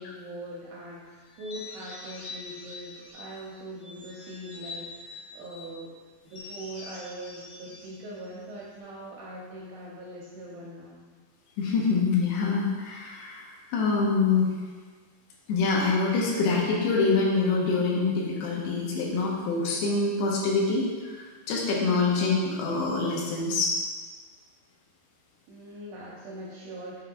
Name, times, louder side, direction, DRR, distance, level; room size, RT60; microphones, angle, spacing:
voice 1, 0.0-5.9 6.2-11.0 25.5-27.0, right 1 dB, 85° right, -4 dB, 2.2 m, -41 dB
sound 1, 1.3-3.4 3.8-5.7 6.3-8.8, left 3 dB, 55° left, 1.6 m, -44 dB
voice 2, 11.6-14.5 15.5-23.7, left 4 dB, 75° left, -2 dB, 2.8 m, -25 dB
6.7 x 3.8 x 4.5 m, 1.5 s
omnidirectional pair, 5.1 m